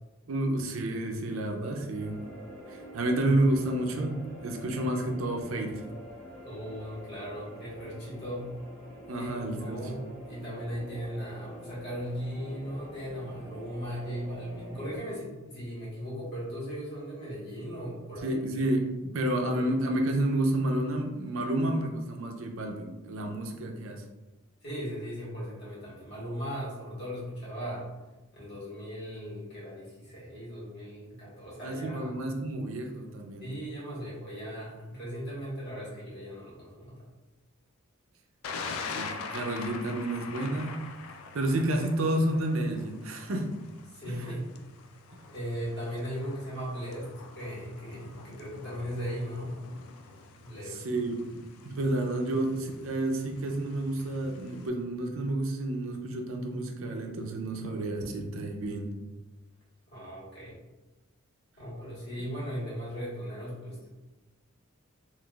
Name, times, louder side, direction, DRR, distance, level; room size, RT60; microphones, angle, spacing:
voice 1, 0.3-2.2 2.7-5.8 9.1-9.8 18.2-24.0 31.6-33.4 38.9-40.8 41.3-43.5 44.1-44.2 50.7-51.2 51.6-58.9, right 1 dB, 70° right, 3 dB, 0.5 m, -30 dB
sound 1, 1.9-15.0, equal, 10° left, 0.9 m, -46 dB
voice 2, 6.4-8.5 9.1-18.7 19.4-19.7 24.6-27.9 28.3-32.3 33.4-36.9 43.9-44.5 45.2-49.6 50.4-50.8 59.9-60.6 61.6-63.9, equal, 55° left, -7 dB, 1.4 m, -38 dB
Thunder, 38.4-54.7, left 4 dB, 85° left, 0.3 m, -44 dB
3.7 x 2.5 x 2.3 m, 1.1 s
head